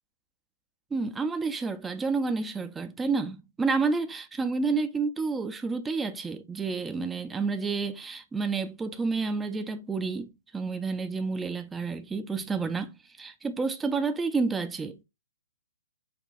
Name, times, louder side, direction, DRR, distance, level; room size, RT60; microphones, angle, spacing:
voice 1, 0.9-15.0, right 4 dB, 10° right, 0.4 m, -30 dB
5.8 x 2.2 x 2.5 m
hypercardioid pair, 140°, 0 cm